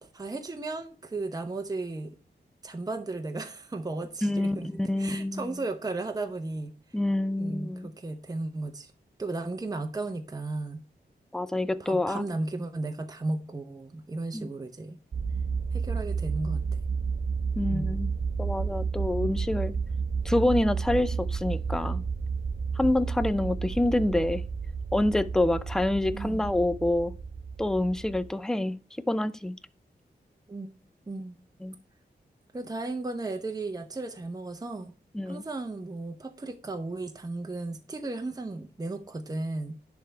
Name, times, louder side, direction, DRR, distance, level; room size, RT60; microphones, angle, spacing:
voice 1, 0.0-2.1 2.6-6.7 7.4-8.9 9.2-10.8 11.8-15.0 15.7-16.6 17.7-17.9 26.1-26.5 30.5-30.8 31.1-31.4 32.5-34.9 35.3-39.8, right 2 dB, 20° right, 0.8 m, -35 dB
voice 2, 4.2-5.5 6.9-7.9 11.3-12.3 14.3-14.5 17.6-18.1 18.4-19.7 20.2-22.0 22.8-24.4 24.9-27.1 27.6-28.8 29.1-29.6 31.6-31.7 35.1-35.4, left 1 dB, 5° left, 0.4 m, -27 dB
sound 1, 15.1-28.3, right 5 dB, 70° right, 1.1 m, -31 dB
10.5 x 3.5 x 4.3 m
wide cardioid pair, 95°, 17 cm